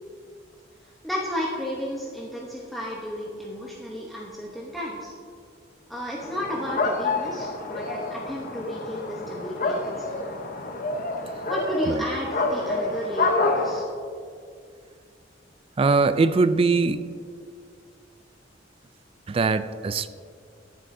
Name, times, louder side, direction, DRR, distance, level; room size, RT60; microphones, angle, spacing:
voice 1, 1.0-5.1 5.9-10.1 11.5-13.9, equal, ahead, -4 dB, 0.8 m, -32 dB
sound 1, 6.2-13.8, left 3 dB, 45° left, 0.8 m, -28 dB
voice 2, 15.8-17.0 19.3-20.1, right 4 dB, 30° right, 13 dB, 0.3 m, -21 dB
13.5 x 8.2 x 2.6 m, 2.2 s
head